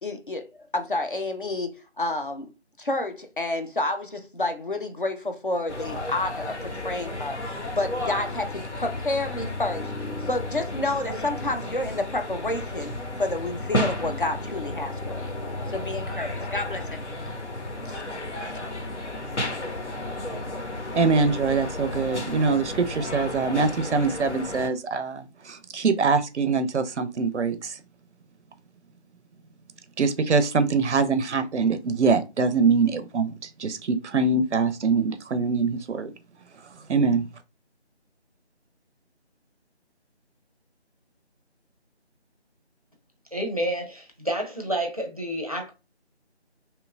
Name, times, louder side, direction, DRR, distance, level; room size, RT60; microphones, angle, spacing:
voice 1, 0.0-2.5 2.8-7.4 7.7-9.9 10.2-12.9 13.2-15.4 15.7-17.3 17.8-18.0, left 2 dB, 50° left, 0.4 m, -29 dB
sound 1, 5.7-24.7, left 1 dB, 85° left, 0.8 m, -33 dB
voice 2, 20.9-27.8 30.0-36.1 36.9-37.3, right 4 dB, 85° right, 0.5 m, -23 dB
voice 3, 43.3-45.7, right 1 dB, 35° right, 0.5 m, -29 dB
2.9 x 2.2 x 2.3 m
figure-of-eight pair, 165°, 34 cm